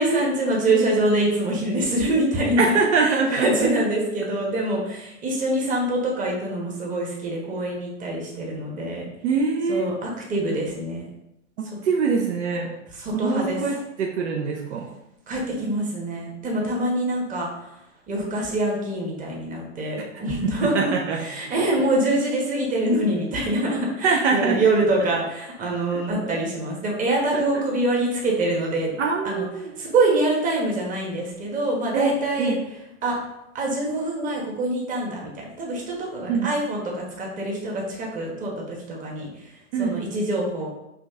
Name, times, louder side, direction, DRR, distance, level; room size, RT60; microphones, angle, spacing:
voice 1, 0.0-2.6 3.0-9.1 9.7-11.0 13.0-13.6 15.3-17.5 18.1-20.9 21.2-28.9 29.2-29.4 29.8-32.5 33.0-33.2 33.5-39.3 39.8-40.7, right 1 dB, 20° right, -2 dB, 1.2 m, -25 dB
voice 2, 2.6-3.7 9.2-9.9 11.6-12.8 13.1-14.9 20.3-21.2 24.0-24.6 25.9-26.4 27.3-27.6 29.0-29.7 31.9-32.6 36.3-36.5 39.7-40.0, right 5 dB, 65° right, 2 dB, 0.7 m, -24 dB
5.1 x 3.0 x 3.5 m, 0.89 s
hypercardioid pair, 125°, 37 cm